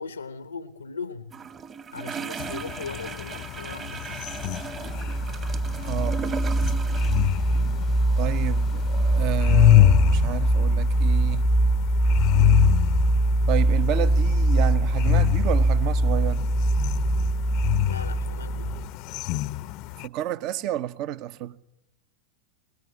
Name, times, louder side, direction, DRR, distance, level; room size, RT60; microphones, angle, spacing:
voice 1, 0.0-1.3 1.9-4.2 17.9-18.8, left 4 dB, 75° left, 1.1 m, -38 dB
sound 1, 1.3-9.4, right 6 dB, 25° right, 1.5 m, -38 dB
sound 2, 2.4-20.1, left 15 dB, 40° left, 0.9 m, -26 dB
sound 3, 4.4-18.9, right 2 dB, 5° right, 1.0 m, -23 dB
voice 2, 5.8-6.2 8.2-11.4 13.5-16.4 20.0-21.6, right 12 dB, 40° right, 1.2 m, -30 dB
25.5 x 19.5 x 9.7 m
figure-of-eight pair, 90°, 0 cm